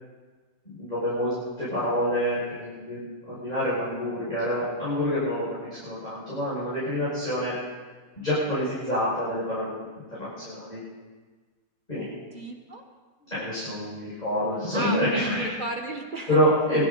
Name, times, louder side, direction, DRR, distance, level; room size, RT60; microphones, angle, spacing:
voice 1, 0.6-7.5 8.2-10.8 11.9-12.0 13.3-15.5 16.3-16.9, equal, 25° left, -11 dB, 6.2 m, -27 dB
voice 2, 12.3-12.8 14.7-16.4, right 2 dB, 35° right, 3 dB, 1.3 m, -34 dB
22.0 x 13.5 x 4.0 m, 1.4 s
omnidirectional pair, 1.7 m